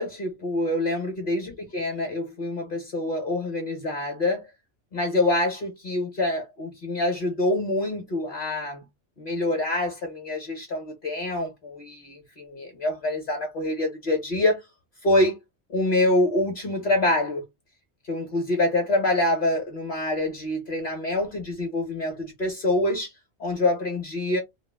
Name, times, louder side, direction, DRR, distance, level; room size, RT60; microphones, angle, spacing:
voice 1, 0.0-4.5 4.9-8.8 9.2-14.6 15.0-15.4 15.7-17.4 18.0-23.1 23.4-24.4, left 1 dB, 45° left, 0.9 m, -26 dB
2.4 x 2.0 x 3.2 m
omnidirectional pair, 1.3 m